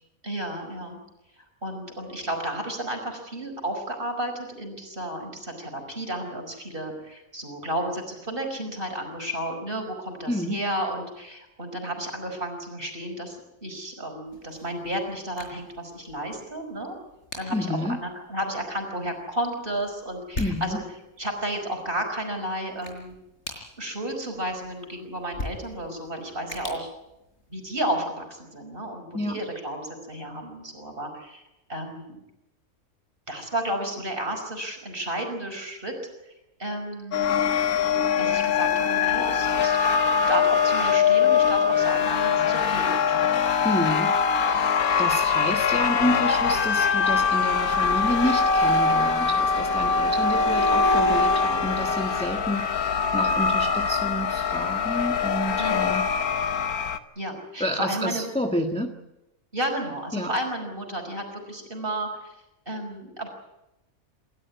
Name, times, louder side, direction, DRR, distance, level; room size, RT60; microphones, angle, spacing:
voice 1, 0.2-1.0 1.4-17.0 17.4-17.7 18.0-20.8 21.2-23.1 23.8-26.9 27.5-31.4 31.7-32.2 33.3-35.9 36.3-36.4 36.6-37.3 38.2-43.2 55.6-55.9 57.2-58.3 59.5-62.4 62.7-63.3, right 1 dB, 40° right, 3 dB, 5.5 m, -32 dB
voice 2, 10.3-10.6 17.5-18.0 20.4-20.8 29.1-29.4 43.6-44.2 44.5-44.7 45.0-56.1 57.6-58.9 60.1-60.3, equal, 5° left, 3 dB, 1.5 m, -29 dB
sound 1, 14.3-27.9, left 2 dB, 50° left, 5.3 m, -43 dB
sound 2, 37.1-57.0, left 6 dB, 85° left, 1.6 m, -23 dB
28.0 x 13.5 x 9.5 m, 0.93 s
omnidirectional pair, 1.5 m